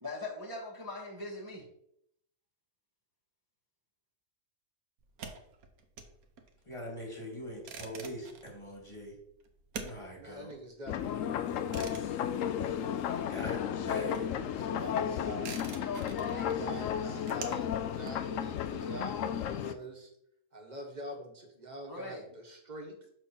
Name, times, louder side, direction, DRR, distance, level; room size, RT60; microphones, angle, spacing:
voice 1, 0.0-1.7 14.6-14.9 15.7-16.6 21.9-22.3, left 3 dB, 15° right, -4 dB, 1.3 m, -41 dB
sound 1, 5.0-13.4 13.6-19.4, right 5 dB, 85° right, 1.4 m, -48 dB
voice 2, 6.6-9.1 9.8-10.5 13.3-14.4, equal, 20° left, 0 dB, 2.1 m, -42 dB
voice 3, 10.2-12.2 13.3-15.6 16.3-20.1 20.5-23.0, right 1 dB, 35° right, 2 dB, 1.3 m, -46 dB
sound 2, 10.9-19.7, left 9 dB, 70° left, 0.9 m, -33 dB
6.3 x 4.4 x 5.8 m, 0.74 s
omnidirectional pair, 1.5 m